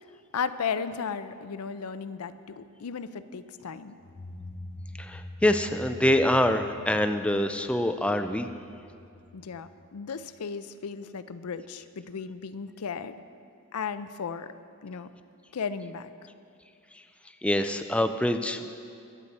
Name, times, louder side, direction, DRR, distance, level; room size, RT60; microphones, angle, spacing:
voice 1, 0.3-4.0 9.3-13.2 13.7-14.5 14.8-15.1 15.5-16.1, left 6 dB, 80° left, 12 dB, 0.5 m, -35 dB
sound 1, 4.0-10.6, left 1 dB, 30° left, 0.7 m, -45 dB
voice 2, 5.0-8.5 17.4-18.7, left 1 dB, 5° left, 8 dB, 0.4 m, -25 dB
22.5 x 8.2 x 4.2 m, 2.4 s
head